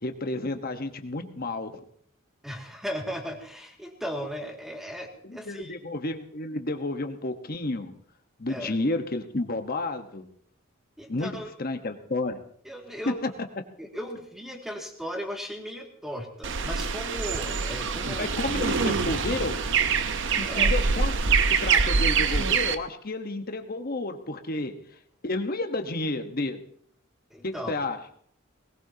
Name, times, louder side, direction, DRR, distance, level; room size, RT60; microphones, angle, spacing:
voice 1, 0.0-1.8 5.2-7.9 8.4-10.3 11.1-11.3 11.6-12.4 18.2-19.6 20.5-24.7 25.2-26.6 27.4-28.0, left 2 dB, 45° left, 6 dB, 1.2 m, -31 dB
voice 2, 2.4-5.7 8.5-8.7 11.0-11.5 12.6-13.4 13.8-18.3 20.4-20.7 27.3-27.7, equal, ahead, 1 dB, 2.2 m, -37 dB
sound 1, 16.4-22.7, right 5 dB, 60° right, 0.9 m, -25 dB
19.5 x 18.5 x 2.8 m, 0.64 s
head